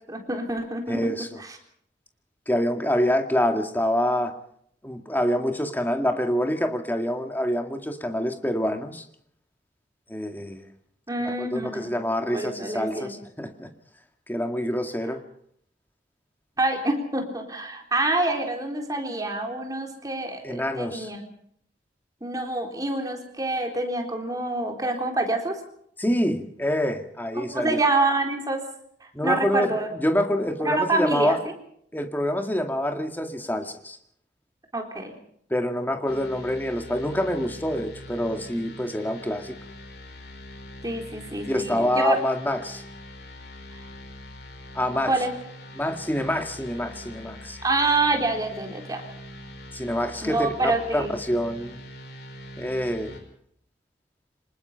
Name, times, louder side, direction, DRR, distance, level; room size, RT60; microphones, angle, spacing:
voice 1, 0.0-1.1 1.4-1.6 11.1-11.9 12.3-13.2 16.6-21.3 22.2-25.6 27.3-28.6 29.0-29.9 30.6-31.4 34.7-35.2 40.8-42.2 45.1-45.3 47.6-49.0 50.2-51.2, right 2 dB, 20° right, 2 dB, 3.8 m, -27 dB
voice 2, 0.9-1.3 2.5-4.3 4.8-9.0 10.1-10.6 11.4-13.7 14.3-15.2 20.4-21.1 26.0-27.8 29.1-31.4 31.9-34.0 35.5-39.6 41.5-42.8 44.7-45.2 45.8-47.6 49.7-51.8 52.6-53.2, equal, 10° left, 5 dB, 2.1 m, -26 dB
sound 1, 36.1-53.2, left 1 dB, 65° left, 5.3 m, -43 dB
26.0 x 20.0 x 5.8 m, 0.68 s
head